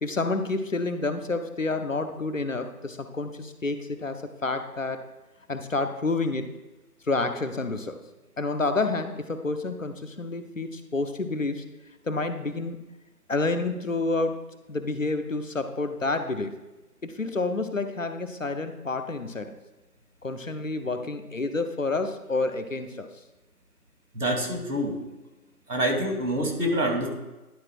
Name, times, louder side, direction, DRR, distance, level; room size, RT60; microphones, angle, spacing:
voice 1, 0.0-5.0 5.5-6.5 7.1-8.0 8.4-11.6 12.1-12.8 13.3-14.4 14.7-16.6 17.0-19.6 20.2-23.1, left 3 dB, 55° left, 8 dB, 0.8 m, -29 dB
voice 2, 24.1-25.0 25.7-27.1, equal, 80° right, 2 dB, 2.4 m, -26 dB
11.0 x 4.3 x 4.6 m, 1.1 s
figure-of-eight pair, 165°, 47 cm